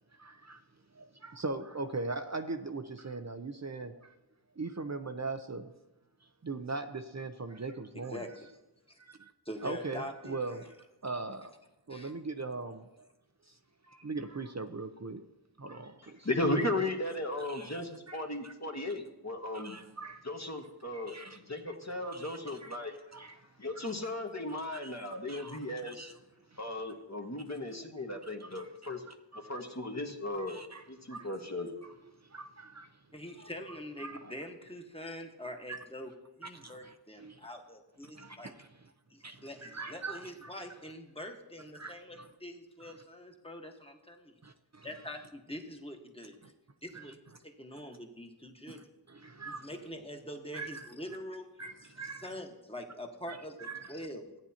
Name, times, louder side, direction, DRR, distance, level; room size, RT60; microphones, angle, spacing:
voice 1, 0.2-0.6 0.9-4.1 4.6-5.7 6.4-8.2 9.0-9.3 9.6-10.7 11.0-11.5 11.9-13.1 13.5-13.6 13.8-15.2 15.6-16.3 17.4-18.5 19.5-20.3 20.9-21.8 22.0-22.8 23.1-23.4 23.7-24.1 24.5-25.0 25.3-26.2 26.5-26.6 28.4-29.6 30.3-31.3 32.2-32.9 33.4-33.5 34.0-34.3 35.7-35.8 36.5-37.4 38.1-38.7 39.2-40.5 41.7-42.3 42.8-42.9 44.4-44.9 46.9-47.1 48.7-49.7 50.5-50.9 51.6-52.3 53.3-53.9, right 3 dB, 40° right, 7 dB, 0.6 m, -41 dB
voice 2, 7.9-8.5 8.9-9.0 9.4-10.4 11.9-12.1 33.1-36.1 36.4-38.5 39.1-44.4 44.8-46.4 46.8-47.2 47.4-48.9 49.4-51.5 51.8-54.4, equal, 15° left, 3 dB, 1.3 m, -44 dB
voice 3, 16.2-19.8 20.2-23.0 23.6-26.1 26.6-29.0 29.5-30.6 30.9-31.7, left 1 dB, 40° left, 3 dB, 1.4 m, -36 dB
14.5 x 9.1 x 2.8 m, 1.0 s
wide cardioid pair, 45°, 42 cm